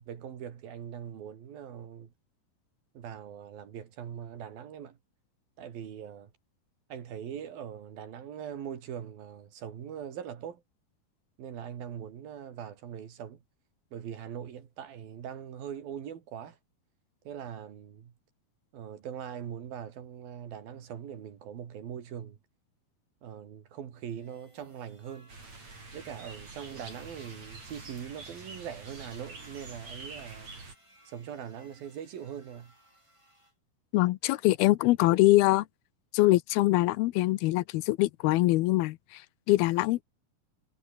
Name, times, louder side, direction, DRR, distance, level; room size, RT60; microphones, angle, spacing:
voice 1, 0.0-2.1 2.9-5.0 5.6-6.3 6.9-10.6 11.4-13.4 13.9-16.6 17.3-18.1 18.7-22.4 23.2-25.3 25.9-30.6 31.1-32.7, right 9 dB, 70° right, 4.2 m, -41 dB
sound 1, 23.9-33.5, right 1 dB, 5° right, 7.9 m, -61 dB
sound 2, 25.3-30.7, right 3 dB, 45° right, 8.5 m, -46 dB
voice 2, 33.9-35.7 36.1-39.2 39.5-40.0, left 18 dB, 80° left, 2.6 m, -23 dB
omnidirectional pair, 4.4 m